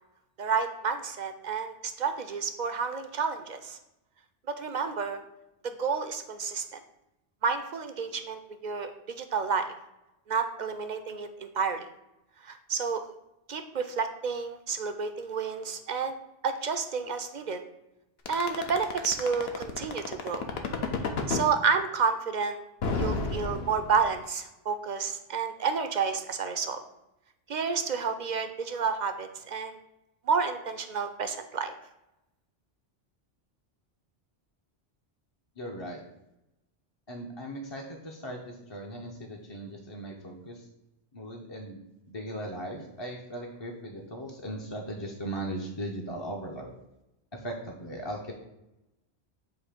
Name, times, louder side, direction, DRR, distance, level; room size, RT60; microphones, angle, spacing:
voice 1, 0.4-3.8 4.5-5.2 5.6-6.8 7.4-8.9 9.2-9.7 10.3-11.9 12.4-13.0 13.5-16.1 16.4-17.6 18.3-20.5 21.3-22.6 22.9-26.8 27.5-29.8 30.3-31.7, right 5 dB, 55° right, 8 dB, 0.5 m, -30 dB
sound 1, 18.3-21.5 22.8-24.2, left 4 dB, 70° left, 1.0 m, -30 dB
voice 2, 35.6-36.0 37.1-40.6 41.1-41.8 42.1-46.7 47.3-48.3, right 1 dB, 30° left, 0 dB, 0.6 m, -38 dB
7.8 x 2.7 x 5.0 m, 0.91 s
omnidirectional pair, 1.1 m